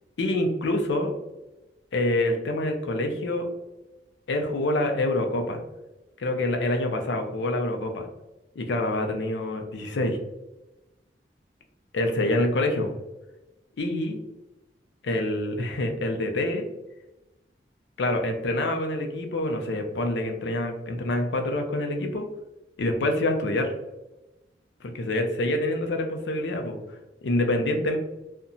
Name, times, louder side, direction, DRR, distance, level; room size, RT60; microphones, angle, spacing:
voice 1, 0.2-1.1 1.9-3.5 4.3-5.6 6.2-8.1 8.6-10.2 11.9-13.0 13.8-14.2 15.0-16.6 18.0-22.2 22.8-23.7 24.8-28.0, left 1 dB, 85° left, 4 dB, 0.5 m, -26 dB
2.7 x 2.2 x 2.6 m, 1.0 s
head